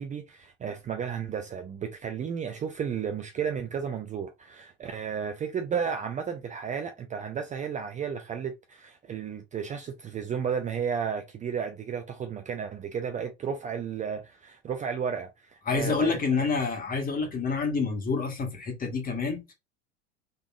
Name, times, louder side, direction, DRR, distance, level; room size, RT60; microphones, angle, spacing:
voice 1, 0.0-16.1 16.4-16.5, right 7 dB, 20° right, 0.5 m, -33 dB
voice 2, 15.7-19.5, left 4 dB, 25° left, 1.5 m, -28 dB
3.9 x 3.5 x 2.3 m
figure-of-eight pair, 75°, 34 cm